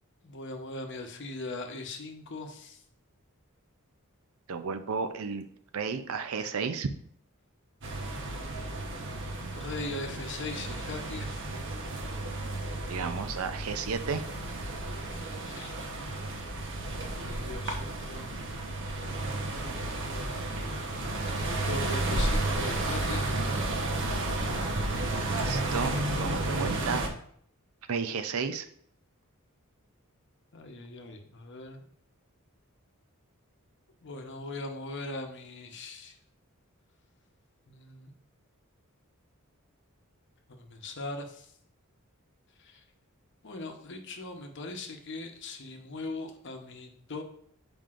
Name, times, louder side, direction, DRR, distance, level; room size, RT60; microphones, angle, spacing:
voice 1, 0.2-2.8 9.5-11.4 15.5-15.7 17.1-18.3 19.3-19.8 21.6-23.3 30.5-31.8 34.0-36.1 37.7-38.1 40.5-41.5 42.6-42.8 43.4-47.2, left 2 dB, 55° left, 4 dB, 0.9 m, -40 dB
voice 2, 4.5-5.5 5.7-6.9 12.9-14.2 25.2-27.1 27.9-28.6, right 5 dB, 75° right, 9 dB, 0.5 m, -33 dB
sound 1, 7.8-27.1, right 2 dB, 60° right, 0.9 m, -32 dB
7.5 x 5.1 x 2.5 m, 0.64 s
head